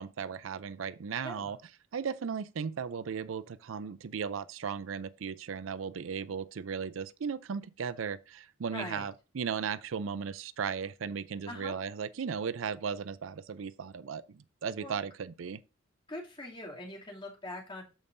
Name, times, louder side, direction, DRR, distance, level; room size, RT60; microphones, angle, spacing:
voice 1, 0.0-1.6 1.9-15.6, right 6 dB, 80° right, 0.5 m, -36 dB
voice 2, 8.7-9.1 11.5-11.7 14.8-15.0 16.1-17.8, left 1 dB, 25° left, 2.6 m, -42 dB
13.5 x 5.4 x 2.6 m
head